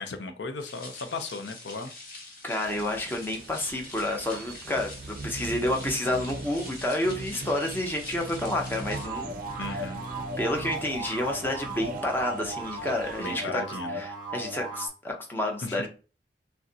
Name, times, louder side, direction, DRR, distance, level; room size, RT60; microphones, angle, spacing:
voice 1, 0.0-1.9 9.6-10.0 13.2-14.0 15.6-15.8, left 3 dB, 90° left, 0.6 m, -36 dB
sound 1, 0.6-9.1, left 2 dB, 50° left, 1.2 m, -45 dB
voice 2, 2.4-9.4 9.7-9.9 10.4-13.6 13.9-15.9, left 1 dB, 10° left, 0.6 m, -30 dB
sound 2, 2.6-13.3, right 2 dB, 50° right, 0.5 m, -41 dB
sound 3, 8.8-14.9, right 2 dB, 25° right, 1.0 m, -36 dB
6.2 x 2.2 x 2.7 m
head